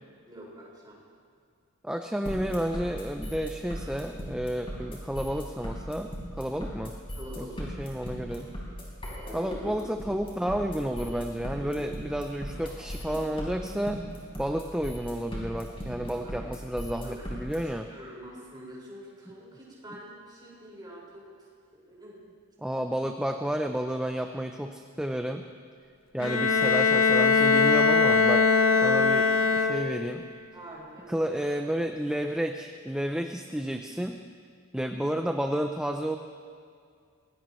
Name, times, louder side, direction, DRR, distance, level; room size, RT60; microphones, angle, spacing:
voice 1, 0.3-1.0 7.2-7.8 9.2-9.5 16.1-16.3 17.0-17.2 17.6-21.3 21.7-22.2 26.2-26.3 26.7-26.9 30.5-31.3, right 1 dB, 20° right, -6 dB, 5.3 m, -46 dB
voice 2, 1.8-6.1 6.4-6.9 7.4-8.5 9.3-14.0 14.4-17.9 22.6-25.4 26.1-28.4 28.8-30.2 31.1-34.2 34.7-36.2, equal, 5° right, 5 dB, 0.5 m, -31 dB
sound 1, 2.3-17.6, equal, 25° left, 4.3 m, -38 dB
Bowed string instrument, 26.2-30.2, left 5 dB, 65° left, 1.0 m, -21 dB
23.5 x 18.5 x 3.1 m, 2.3 s
head